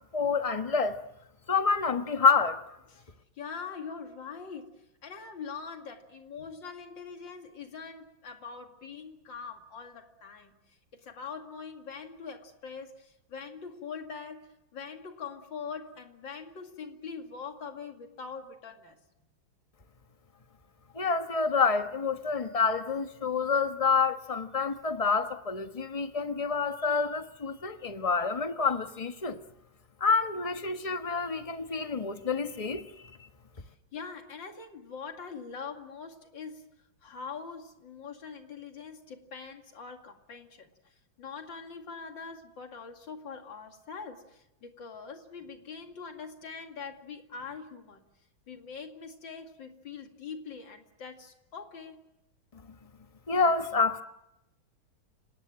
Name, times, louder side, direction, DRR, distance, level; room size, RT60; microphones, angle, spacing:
voice 1, 0.1-1.0 1.5-2.6 20.9-29.4 30.0-32.9 53.3-54.0, left 5 dB, 20° left, 1.0 m, -28 dB
voice 2, 3.4-10.5 10.9-14.4 14.7-19.0 33.6-36.6 37.0-40.7 41.2-48.0 48.5-52.0, left 5 dB, 65° left, 3.0 m, -43 dB
30.0 x 18.5 x 7.6 m
omnidirectional pair, 2.2 m